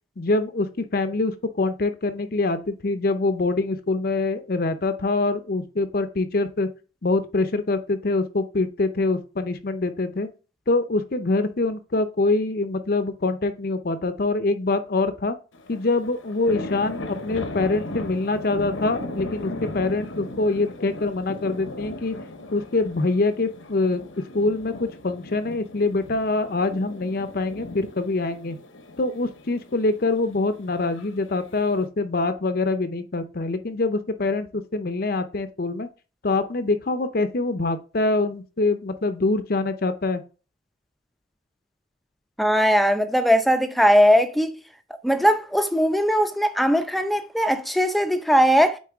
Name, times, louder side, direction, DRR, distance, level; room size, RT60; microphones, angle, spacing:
voice 1, 0.2-6.7 7.0-10.3 10.7-15.4 15.7-22.2 22.5-24.0 24.3-28.6 29.0-35.9 36.2-40.2, left 3 dB, 50° left, 0.6 m, -24 dB
sound 1, 15.5-31.9, left 2 dB, 85° left, 0.9 m, -37 dB
voice 2, 42.4-44.5 45.0-48.8, equal, ahead, 0.5 m, -19 dB
8.5 x 4.0 x 3.5 m
head